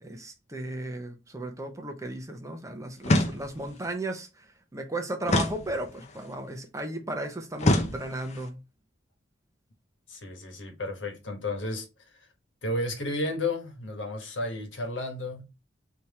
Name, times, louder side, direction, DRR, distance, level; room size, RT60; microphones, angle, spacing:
voice 1, 0.0-8.6, right 1 dB, 15° right, 0.6 m, -35 dB
sound 1, 3.0-3.8 5.3-6.2 7.6-8.5, left 1 dB, 35° left, 0.5 m, -26 dB
voice 2, 10.1-11.9 12.6-15.4, left 2 dB, 80° left, 1.3 m, -32 dB
3.5 x 2.9 x 4.2 m
head